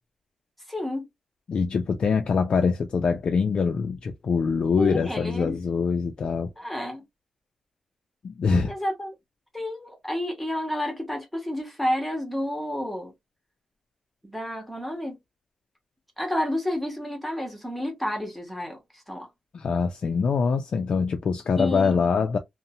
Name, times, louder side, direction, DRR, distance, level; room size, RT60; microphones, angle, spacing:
voice 1, 0.7-1.1 4.8-5.6 6.6-7.0 8.6-9.1 9.5-13.1 14.2-15.2 16.2-19.3 21.5-22.1, left 1 dB, ahead, 0.8 m, -30 dB
voice 2, 1.5-6.5 8.2-8.7 19.5-22.4, left 5 dB, 50° left, 0.3 m, -24 dB
2.6 x 2.0 x 2.6 m
wide cardioid pair, 155°, 2 cm